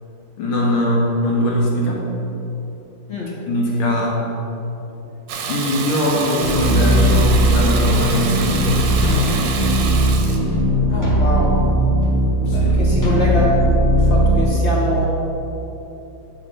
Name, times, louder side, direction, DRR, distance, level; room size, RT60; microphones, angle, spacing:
voice 1, 0.4-2.1 3.1-4.3 5.5-9.0 12.5-12.8, left 1 dB, 80° left, -3 dB, 2.0 m, -21 dB
Water tap faucet / Bathtub (filling or washing), 5.3-10.4, right 5 dB, 70° right, 1.2 m, -27 dB
sound 1, 6.4-14.5, right 1 dB, 15° left, 0.6 m, -17 dB
voice 2, 10.9-11.5 12.5-13.7 14.0-15.0, left 1 dB, 60° left, -4 dB, 0.7 m, -24 dB
9.0 x 3.2 x 4.9 m, 3.0 s
omnidirectional pair, 2.3 m